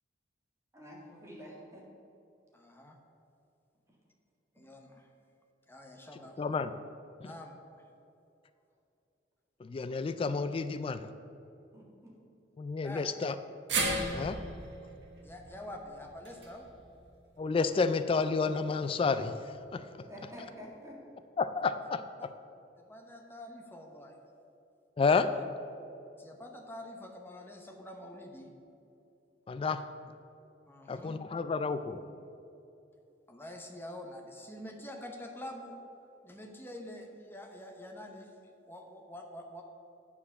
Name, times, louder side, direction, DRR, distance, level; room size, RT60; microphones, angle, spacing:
voice 1, 0.7-1.8 11.7-12.1 20.1-21.0, equal, 15° right, -4 dB, 1.9 m, -48 dB
voice 2, 2.5-3.0 4.5-5.1 5.7-6.4 7.2-7.8 12.8-13.1 15.2-16.6 22.8-24.1 25.2-25.3 26.2-28.5 30.7-31.2 33.3-35.7 36.2-39.6, left 1 dB, 10° left, 3 dB, 0.9 m, -46 dB
voice 3, 6.4-6.7 7.2-7.3 9.6-11.0 12.6-13.3 14.1-14.4 17.4-19.3 19.7-19.8 21.4-22.3 25.0-25.3 29.5-29.8 30.9-32.0, left 4 dB, 30° left, 12 dB, 0.3 m, -30 dB
sound 1, 13.7-18.0 18.3-18.4 19.6-19.7, right 2 dB, 70° right, 1.4 m, -37 dB
8.9 x 4.8 x 7.0 m, 2.7 s
head